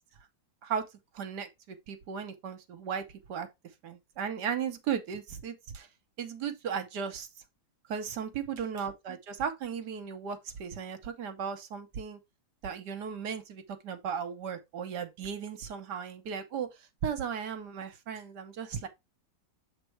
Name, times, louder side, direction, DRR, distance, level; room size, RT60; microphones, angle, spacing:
voice 1, 1.1-3.5 3.8-5.9 6.2-7.3 7.9-12.2 12.6-16.7 17.0-18.9, right 7 dB, 65° right, 1.3 m, -36 dB
7.3 x 3.4 x 4.5 m
omnidirectional pair, 2.1 m